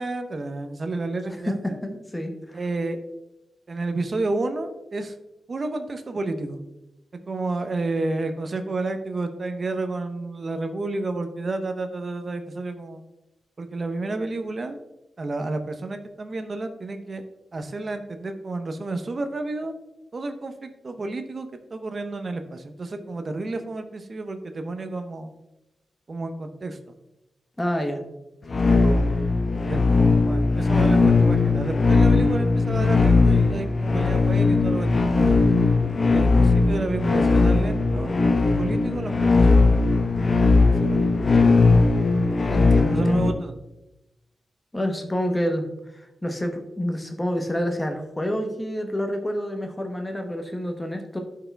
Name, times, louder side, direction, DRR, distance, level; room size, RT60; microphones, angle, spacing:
voice 1, 0.0-1.8 2.5-3.0 3.7-5.1 5.5-6.6 7.3-13.0 13.6-14.8 15.2-17.2 17.5-19.7 20.1-25.3 26.1-27.0 28.8-29.1 29.6-35.4 36.1-38.2 38.5-39.7 40.8-41.1 42.9-43.6, right 2 dB, 35° right, 8 dB, 0.7 m, -30 dB
voice 2, 1.8-2.6 27.6-28.0 42.5-43.2 44.7-45.7 45.9-51.2, equal, 10° left, 5 dB, 0.9 m, -28 dB
sound 1, 28.5-43.3, left 3 dB, 35° left, 0.7 m, -19 dB
11.5 x 4.7 x 3.4 m, 0.91 s
wide cardioid pair, 165°, 0 cm